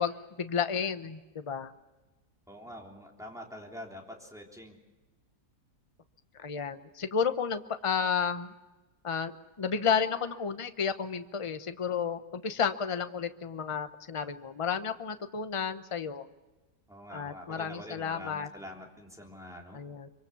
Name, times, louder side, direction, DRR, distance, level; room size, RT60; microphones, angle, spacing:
voice 1, 0.0-1.7 6.3-8.5 9.0-16.2 17.1-18.5 19.7-20.1, left 6 dB, 25° left, 9 dB, 0.8 m, -32 dB
voice 2, 2.5-4.8 16.9-19.8, equal, ahead, -1 dB, 3.4 m, -45 dB
24.5 x 24.5 x 7.1 m, 1.1 s
omnidirectional pair, 1.7 m